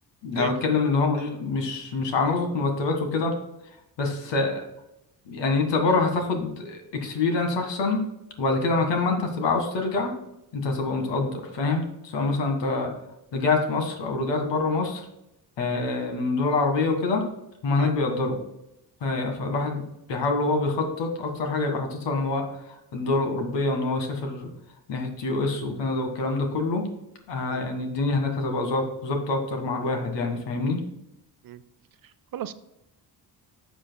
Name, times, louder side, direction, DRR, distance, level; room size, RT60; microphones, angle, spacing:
voice 1, 0.2-3.3 4.0-4.6 5.3-8.0 8.4-10.1 10.5-12.9 13.3-15.1 15.6-17.3 17.6-18.4 19.0-24.5 24.9-26.9 27.3-30.8, left 3 dB, 90° left, 4 dB, 1.8 m, -26 dB
voice 2, 32.0-32.5, right 12 dB, 55° right, 13 dB, 0.6 m, -36 dB
12.0 x 7.2 x 2.3 m, 0.85 s
cardioid pair, 110°, 41 cm